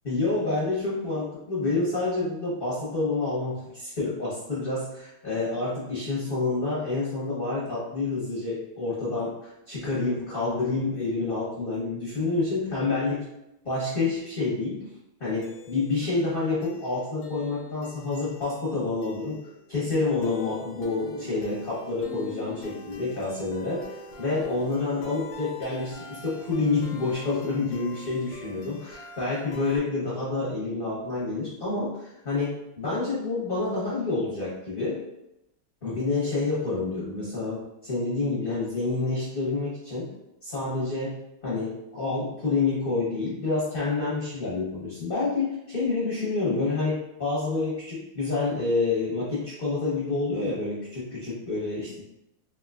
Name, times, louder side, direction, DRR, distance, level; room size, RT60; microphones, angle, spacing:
voice 1, 0.0-13.2 13.6-14.8 15.2-19.4 19.7-35.0 35.8-40.1 40.4-41.1 41.4-52.0, left 3 dB, 45° left, -8 dB, 0.7 m, -28 dB
sound 1, 15.4-29.8, left 3 dB, 80° left, 1.5 m, -45 dB
3.7 x 2.8 x 2.4 m, 0.86 s
omnidirectional pair, 2.3 m